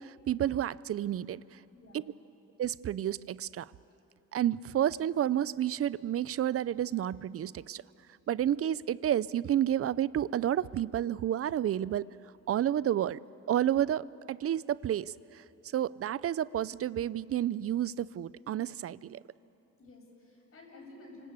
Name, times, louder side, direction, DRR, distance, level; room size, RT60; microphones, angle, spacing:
voice 1, 0.0-1.6 1.9-2.0 2.6-3.7 4.3-7.8 8.3-12.1 12.5-13.2 13.5-15.4 15.7-19.2, right 11 dB, 50° right, 19 dB, 0.6 m, -30 dB
voice 2, 1.7-2.1 19.8-21.3, left 2 dB, 45° left, 1 dB, 7.3 m, -52 dB
28.5 x 25.0 x 8.3 m, 2.8 s
cardioid pair, 90°, 30 cm